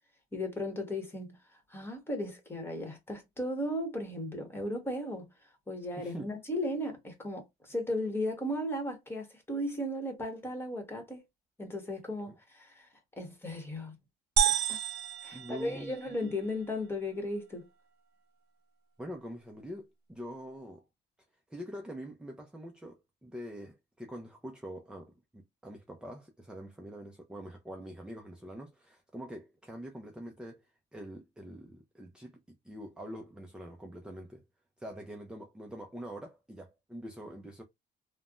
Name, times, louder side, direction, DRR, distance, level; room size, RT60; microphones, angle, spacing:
voice 1, 0.3-1.4 1.7-5.3 5.7-11.2 11.6-12.9 13.2-13.9 14.5-14.8 15.2-17.7, left 1 dB, 15° left, 1.3 m, -36 dB
voice 2, 6.0-6.3 12.3-12.4 15.3-16.2 19.0-20.8 21.5-34.4 34.8-37.6, equal, 5° right, 0.5 m, -45 dB
sound 1, 14.4-16.3, right 9 dB, 75° right, 0.6 m, -30 dB
3.3 x 2.1 x 2.4 m
cardioid pair, 110°, 17 cm